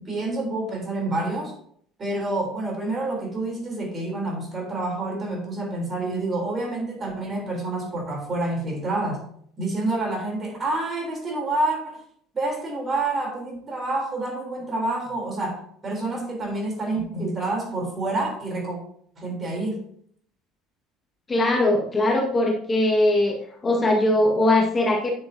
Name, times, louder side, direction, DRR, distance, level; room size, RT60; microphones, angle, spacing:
voice 1, 0.0-1.5 2.0-9.2 9.6-12.0 12.3-18.8 19.2-19.8, right 2 dB, 35° right, 1 dB, 3.7 m, -28 dB
voice 2, 21.3-25.1, left 1 dB, 25° left, 0 dB, 1.7 m, -21 dB
9.5 x 7.6 x 2.8 m, 0.62 s
hypercardioid pair, 65°, 0 cm